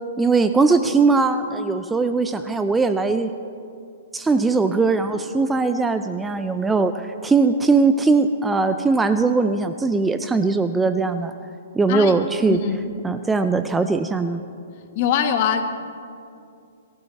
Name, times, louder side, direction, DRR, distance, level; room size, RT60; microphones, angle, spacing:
voice 1, 0.2-3.3 4.1-11.3 11.7-12.6 13.0-14.4, right 4 dB, 10° right, 9 dB, 0.5 m, -20 dB
voice 2, 12.5-12.8 14.9-15.6, left 8 dB, 45° left, 6 dB, 1.7 m, -22 dB
23.0 x 14.5 x 4.2 m, 2.4 s
hypercardioid pair, 140°, 0 cm